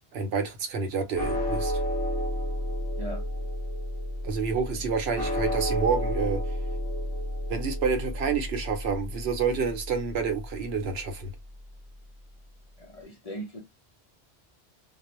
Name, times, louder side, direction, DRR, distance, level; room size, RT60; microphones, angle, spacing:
voice 1, 0.1-1.8 4.2-6.4 7.5-11.3, right 5 dB, 75° right, 0.9 m, -28 dB
sound 1, 1.2-11.6, equal, 10° left, 1.0 m, -32 dB
voice 2, 12.8-13.6, right 1 dB, 45° left, 0.6 m, -39 dB
2.3 x 2.0 x 3.0 m
omnidirectional pair, 1.1 m